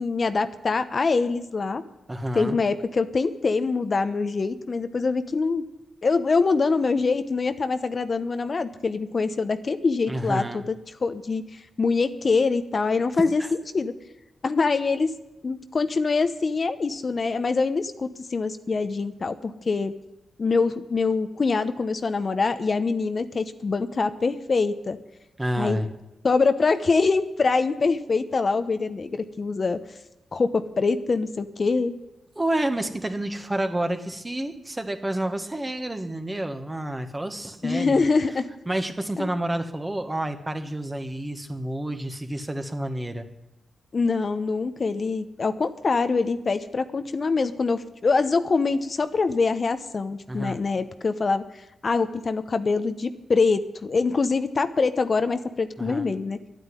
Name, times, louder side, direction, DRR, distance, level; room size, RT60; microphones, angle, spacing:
voice 1, 0.0-1.8 2.3-5.6 6.0-10.8 11.0-13.4 13.7-13.9 14.4-15.1 15.4-19.9 20.4-25.0 25.6-25.8 26.2-29.8 30.3-31.9 37.6-38.5 39.2-39.3 43.9-51.4 51.8-56.4, left 4 dB, 50° left, 10 dB, 0.8 m, -24 dB
voice 2, 2.1-2.6 10.1-10.6 13.4-13.5 25.4-25.9 32.3-38.0 38.7-43.3 50.3-50.6 55.8-56.1, right 1 dB, 20° right, 7 dB, 1.6 m, -29 dB
11.0 x 9.2 x 9.7 m, 0.94 s
cardioid pair, 50°, 0 cm